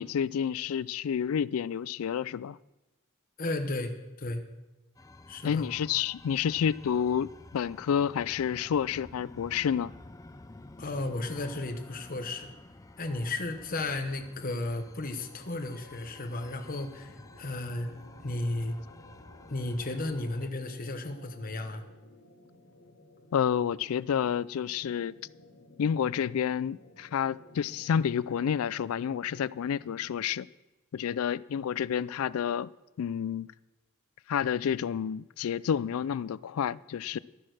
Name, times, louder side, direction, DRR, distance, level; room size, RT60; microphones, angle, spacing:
voice 1, 0.0-2.6 5.4-9.9 23.3-25.2 25.8-30.5 30.9-32.7 33.0-33.5 34.3-37.2, left 8 dB, 85° left, 0.4 m, -29 dB
voice 2, 3.4-4.4 5.3-5.7 10.8-12.5 13.0-17.9 18.2-18.8 19.5-21.8, left 2 dB, 40° left, 1.1 m, -34 dB
sound 1, 5.0-20.5, left 2 dB, 15° left, 0.4 m, -51 dB
sound 2, 15.2-30.3, left 2 dB, 65° left, 1.9 m, -56 dB
12.5 x 8.5 x 6.4 m
head